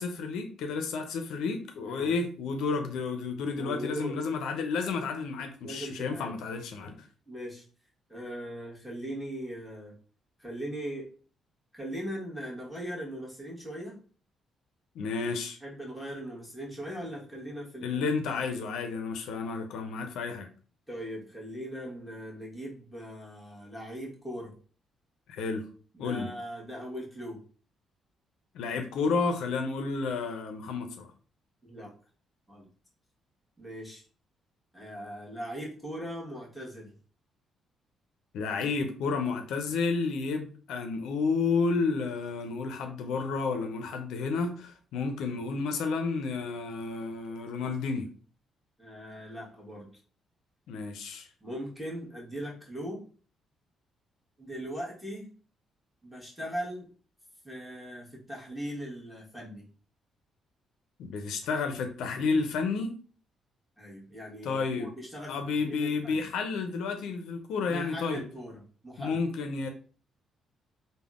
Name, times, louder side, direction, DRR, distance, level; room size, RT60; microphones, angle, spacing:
voice 1, 0.0-7.0 15.0-15.6 17.8-20.5 25.3-25.6 26.0-26.3 28.5-31.1 38.3-48.1 50.7-51.3 61.0-62.9 64.4-64.9 65.3-68.2 69.0-69.7, left 4 dB, 85° left, 5 dB, 0.4 m, -31 dB
voice 2, 1.8-2.1 3.5-4.2 5.6-6.4 7.3-7.6 8.1-10.0 10.4-11.1 11.7-14.0 15.6-18.2 20.9-24.5 25.9-27.4 31.6-31.9 32.5-32.7 33.6-34.0 34.7-36.9 48.8-49.9 51.4-53.0 54.4-55.3 56.0-56.9 57.4-59.7 63.8-66.3 67.6-69.2, equal, ahead, -5 dB, 1.1 m, -39 dB
3.4 x 2.0 x 2.3 m, 0.40 s
cardioid pair, 90°, 0 cm